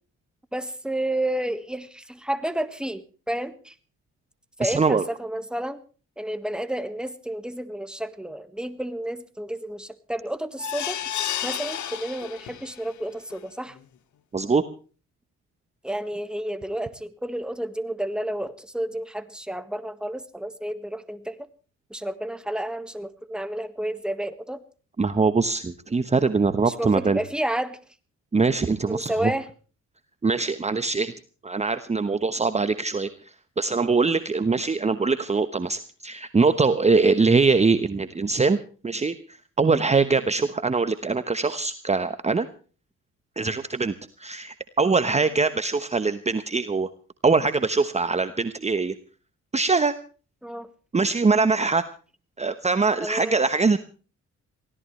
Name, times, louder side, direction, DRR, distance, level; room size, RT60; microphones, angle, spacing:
voice 1, 0.5-3.7 4.6-5.8 6.2-11.0 11.4-13.8 15.8-21.5 21.9-24.6 26.6-27.8 28.9-29.5 50.4-50.7 53.0-53.4, right 1 dB, 5° right, 11 dB, 1.6 m, -31 dB
voice 2, 4.6-5.1 14.3-14.6 25.0-27.2 28.3-29.3 30.2-31.1 31.4-38.6 38.8-42.5 43.4-46.9 47.2-48.9 49.5-49.9 50.9-51.8 52.4-53.8, right 4 dB, 20° right, 11 dB, 1.1 m, -23 dB
sound 1, 10.6-12.9 13.3-13.4 13.8-13.9, left 10 dB, 70° left, 1.5 m, -31 dB
23.5 x 17.0 x 3.2 m, 0.38 s
cardioid pair, 90°, 30 cm